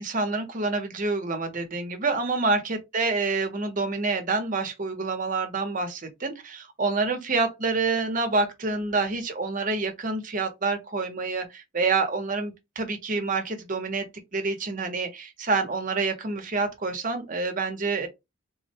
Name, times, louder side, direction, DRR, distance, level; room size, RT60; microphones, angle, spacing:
voice 1, 0.0-14.0 14.3-18.1, right 3 dB, 40° right, 0.8 m, -27 dB
3.5 x 2.1 x 2.7 m
head